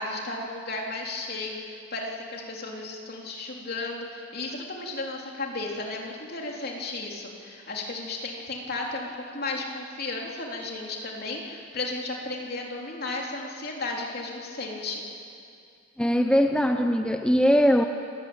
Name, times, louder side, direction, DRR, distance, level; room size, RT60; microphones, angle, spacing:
voice 1, 0.0-9.1 9.3-15.0, left 2 dB, 50° left, -1 dB, 3.5 m, -34 dB
voice 2, 16.0-17.9, equal, 5° left, 5 dB, 0.6 m, -21 dB
27.5 x 16.0 x 8.9 m, 2.4 s
head